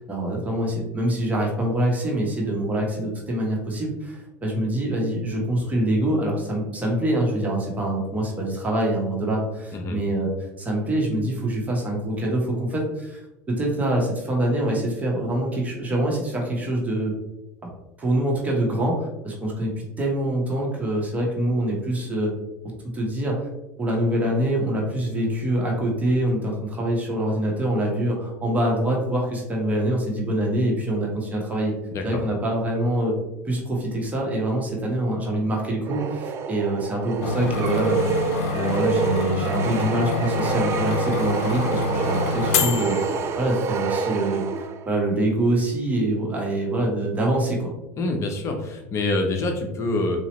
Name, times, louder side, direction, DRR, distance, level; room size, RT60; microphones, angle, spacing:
voice 1, 0.0-10.3 10.6-17.1 18.0-22.3 22.9-23.5 23.8-31.7 32.0-33.1 33.4-43.0 43.4-47.7, right 1 dB, 20° right, -2 dB, 1.1 m, -25 dB
voice 2, 31.9-32.2 48.0-50.2, left 2 dB, 40° left, 4 dB, 0.7 m, -26 dB
sound 1, 35.9-45.0, right 6 dB, 35° right, 0.3 m, -28 dB
sound 2, 37.2-43.7, left 5 dB, 80° left, 0.4 m, -27 dB
4.0 x 2.8 x 3.1 m, 0.92 s
supercardioid pair, 105°, 8 cm